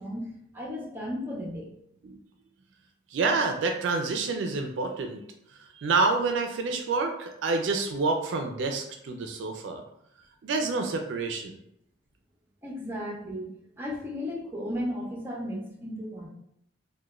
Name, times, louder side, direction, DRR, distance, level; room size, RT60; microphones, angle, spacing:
voice 1, 0.0-1.7 12.6-13.5 13.8-16.3, equal, 10° right, -3 dB, 0.5 m, -35 dB
voice 2, 3.1-5.2 5.6-9.8 10.4-11.6, right 3 dB, 70° right, 4 dB, 0.3 m, -28 dB
3.0 x 2.1 x 2.3 m, 0.75 s
head